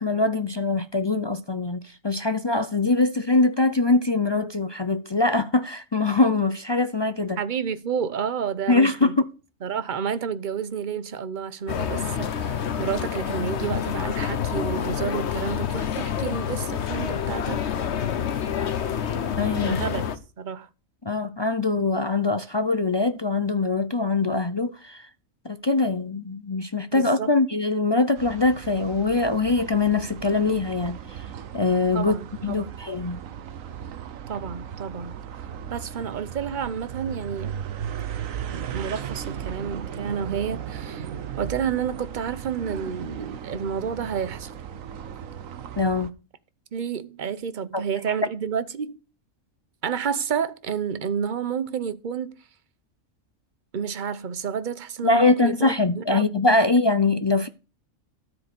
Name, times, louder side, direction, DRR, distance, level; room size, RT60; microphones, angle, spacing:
voice 1, 0.0-7.4 8.7-9.3 19.4-19.8 21.0-25.1 25.4-31.3 31.5-32.2 32.4-33.2 45.8-46.1 47.7-47.8 55.0-57.5, left 3 dB, 45° left, 0.3 m, -23 dB
voice 2, 7.4-9.1 9.6-17.6 19.5-20.0 20.4-20.7 26.9-27.3 31.9-32.7 34.3-35.1 35.7-37.6 38.5-41.1 41.4-44.5 46.7-49.0 49.8-52.4 53.7-56.6, right 7 dB, 45° right, 0.9 m, -30 dB
sound 1, 11.7-20.2, left 8 dB, 60° left, 1.1 m, -28 dB
sound 2, 28.2-46.1, right 9 dB, 80° right, 1.2 m, -36 dB
13.5 x 5.1 x 6.8 m
omnidirectional pair, 1.4 m